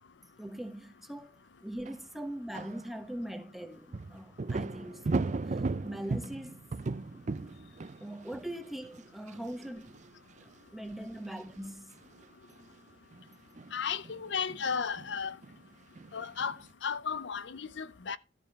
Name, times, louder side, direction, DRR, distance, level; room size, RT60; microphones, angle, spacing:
voice 1, 0.4-1.3 1.6-6.6 6.9-7.3 8.0-9.9 10.7-12.0, right 1 dB, ahead, 1.1 m, -41 dB
sound 1, 1.9-2.0 2.5-2.8 3.9-10.1 10.4-10.5 11.0-11.2 11.4-11.7 12.0-12.2 13.1-15.7 16.0-16.7, right 3 dB, 40° right, 0.4 m, -37 dB
voice 2, 13.7-15.4 16.1-18.2, left 6 dB, 70° left, 0.6 m, -34 dB
13.0 x 4.9 x 6.7 m
head